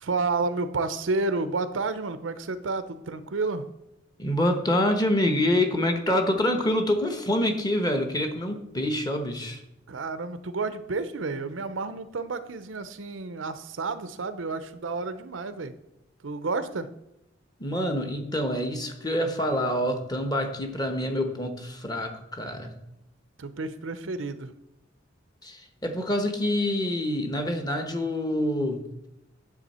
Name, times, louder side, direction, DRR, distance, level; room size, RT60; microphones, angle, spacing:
voice 1, 0.0-3.7 9.9-15.7 16.2-16.9 23.4-24.5, right 3 dB, 85° right, 12 dB, 0.7 m, -30 dB
voice 2, 4.2-9.6 17.6-22.7 25.4-28.8, left 1 dB, 20° left, 6 dB, 1.1 m, -26 dB
9.9 x 7.0 x 4.3 m, 0.89 s
head